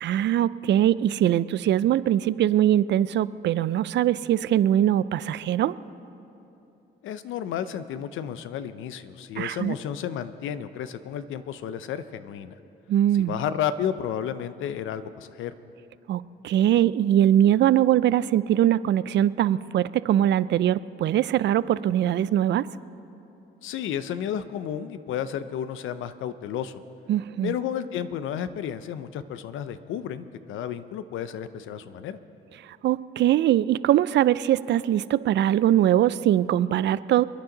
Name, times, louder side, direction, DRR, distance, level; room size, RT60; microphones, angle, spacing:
voice 1, 0.0-5.8 9.4-9.7 12.9-13.4 16.1-22.7 27.1-27.5 32.6-37.2, right 11 dB, 65° right, 17 dB, 0.4 m, -22 dB
voice 2, 7.0-12.6 13.1-15.5 23.6-26.8 27.4-32.2, left 9 dB, 80° left, 12 dB, 0.7 m, -32 dB
28.0 x 9.9 x 3.9 m, 2.9 s
cardioid pair, 90°, 20 cm